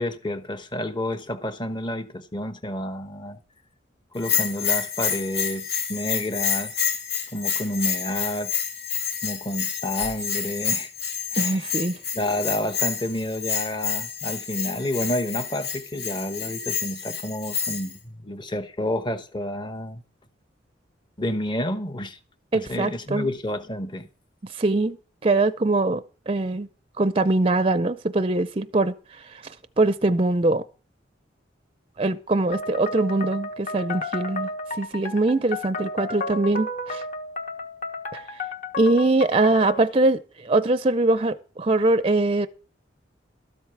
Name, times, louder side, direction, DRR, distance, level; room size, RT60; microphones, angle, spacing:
voice 1, 0.0-3.4 4.1-6.9 7.3-8.5 9.2-10.9 11.3-11.7 12.1-20.0 21.2-22.2 22.5-24.1, left 1 dB, 25° left, 0.9 m, -30 dB
Bell, 4.2-17.9, left 7 dB, 60° left, 2.3 m, -28 dB
voice 2, 11.4-12.0 22.5-23.3 24.4-25.0 25.2-26.7 27.0-30.6 32.0-34.5 34.8-37.0 38.1-38.4 38.8-42.5, right 2 dB, 30° right, 0.5 m, -22 dB
sound 1, 32.5-39.9, left 2 dB, 40° left, 1.2 m, -33 dB
13.0 x 8.0 x 5.8 m
head